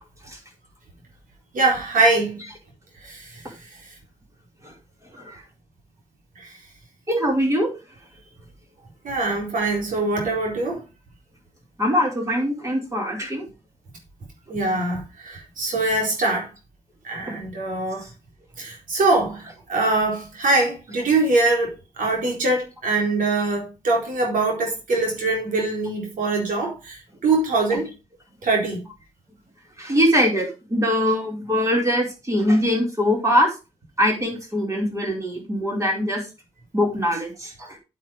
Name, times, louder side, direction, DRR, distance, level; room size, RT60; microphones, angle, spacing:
voice 1, 1.5-2.4 3.0-3.4 6.4-6.5 9.0-10.8 14.5-16.5 17.0-18.0 18.6-27.0 27.2-27.9 28.4-28.8, right 2 dB, 85° right, 4.2 m, -23 dB
voice 2, 7.1-7.7 11.8-13.5 18.0-18.1 27.7-27.8 29.8-33.5 34.0-36.2 36.7-37.8, equal, 20° right, 4.8 m, -22 dB
8.9 x 7.4 x 5.1 m
cardioid pair, 95°, 13 cm